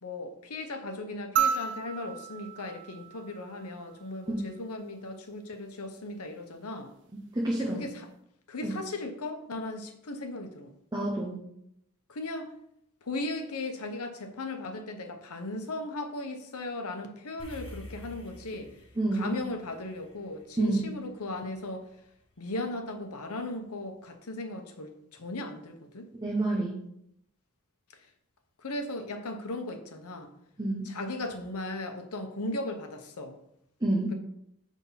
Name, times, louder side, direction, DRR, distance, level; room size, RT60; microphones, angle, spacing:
voice 1, 0.0-6.9 7.6-8.1 8.5-10.7 12.1-12.5 13.0-18.7 19.1-21.9 22.4-26.1 28.6-30.3 30.8-33.4, left 2 dB, 80° left, 5 dB, 0.9 m, -37 dB
sound 1, 1.4-3.9 5.5-5.6, right 7 dB, 55° right, 0.4 m, -32 dB
voice 2, 7.3-7.8 8.6-8.8 10.9-11.5 19.0-19.3 20.6-20.8 26.2-26.8 30.6-30.9 33.8-34.1, right 2 dB, 20° right, -2 dB, 0.9 m, -28 dB
sound 2, 17.4-21.9, left 1 dB, 25° left, 1.4 m, -48 dB
5.5 x 3.6 x 5.7 m, 0.76 s
head